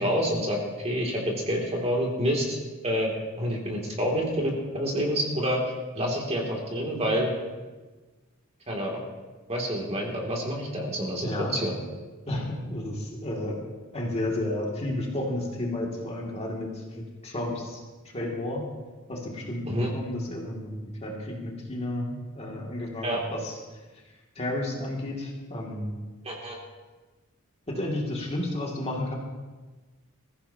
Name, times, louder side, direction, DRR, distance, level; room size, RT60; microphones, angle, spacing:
voice 1, 0.0-2.6 2.8-5.6 5.9-7.3 8.7-9.0 9.5-11.7 19.7-19.9 23.0-23.2 26.2-26.6, equal, 30° right, -1 dB, 2.6 m, -28 dB
voice 2, 11.2-11.6 12.3-13.6 13.9-18.7 19.1-23.6 24.4-26.0 27.7-29.1, left 1 dB, 30° left, -2 dB, 2.4 m, -32 dB
21.5 x 15.0 x 2.9 m, 1.3 s
head